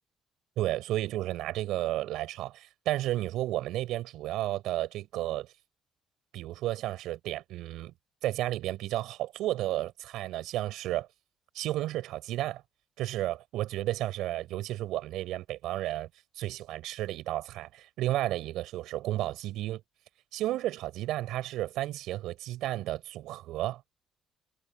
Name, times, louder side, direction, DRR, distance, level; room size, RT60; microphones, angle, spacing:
voice 1, 0.6-5.5 6.3-7.9 8.2-11.1 11.5-12.6 13.0-16.1 16.4-19.8 20.3-23.8, right 15 dB, 90° right, 5.4 m, -32 dB
cardioid pair, 155°, 0 cm